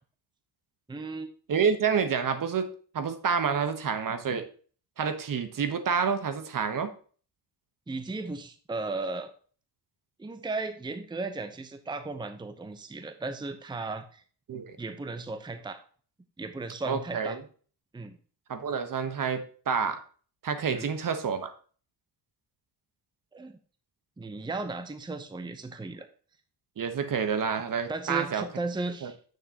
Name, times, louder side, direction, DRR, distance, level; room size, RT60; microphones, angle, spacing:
voice 1, 0.9-1.3 7.9-9.3 10.2-14.2 14.8-15.8 16.4-17.4 17.9-18.2 20.7-20.9 23.3-23.5 24.2-26.1 27.9-29.2, right 3 dB, 10° right, 8 dB, 0.7 m, -35 dB
voice 2, 1.5-4.4 5.0-6.9 14.5-14.8 16.8-17.4 18.5-20.0 20.4-21.5 26.8-28.5 29.0-29.1, right 6 dB, 50° right, 9 dB, 1.1 m, -28 dB
9.0 x 6.5 x 2.9 m, 0.42 s
cardioid pair, 95°, 41 cm